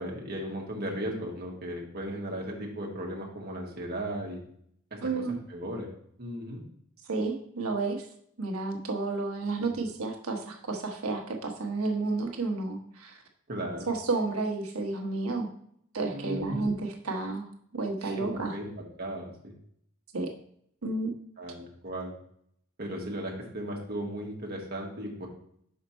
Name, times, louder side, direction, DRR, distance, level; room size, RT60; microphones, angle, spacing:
voice 1, 0.0-4.4 4.9-5.0 5.5-5.9 6.2-6.6 9.6-9.8 13.5-13.9 16.1-16.8 18.0-19.5 21.4-22.1 22.8-25.3, right 1 dB, 45° right, -1 dB, 1.5 m, -36 dB
voice 2, 5.0-5.3 7.1-8.1 8.4-13.2 13.9-15.5 15.9-18.5 20.1-20.3 20.8-21.1, right 3 dB, 90° right, 3 dB, 1.2 m, -31 dB
5.8 x 5.3 x 4.3 m, 0.67 s
head